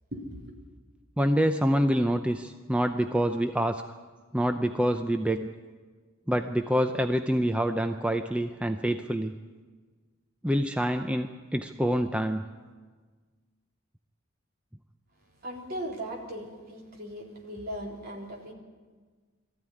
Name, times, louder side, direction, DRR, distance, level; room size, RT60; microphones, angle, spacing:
voice 1, 0.1-0.5 15.4-18.5, equal, 50° right, -1 dB, 3.7 m, -38 dB
voice 2, 1.2-3.8 4.3-5.5 6.3-9.3 10.4-12.4, equal, 5° right, 6 dB, 0.6 m, -26 dB
21.0 x 14.5 x 9.8 m, 1.4 s
head